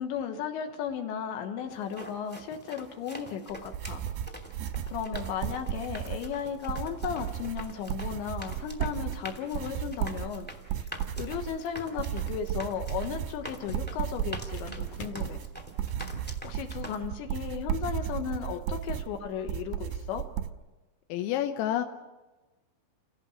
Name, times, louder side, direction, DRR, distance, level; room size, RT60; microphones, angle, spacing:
voice 1, 0.0-4.0 4.9-10.9 11.2-15.4 16.4-20.2, left 8 dB, 70° left, 5 dB, 3.3 m, -35 dB
sound 1, 1.7-17.0, right 1 dB, 10° left, 0.5 m, -45 dB
sound 2, 3.5-20.5, right 10 dB, 80° right, 2.5 m, -35 dB
sound 3, 13.7-15.3 16.0-16.3 16.6-17.0 17.2-17.4 18.2-18.3, equal, 45° left, 2.3 m, -45 dB
voice 2, 21.1-21.8, left 12 dB, 90° left, 6 dB, 3.6 m, -28 dB
29.5 x 17.0 x 6.5 m, 1.2 s
omnidirectional pair, 5.8 m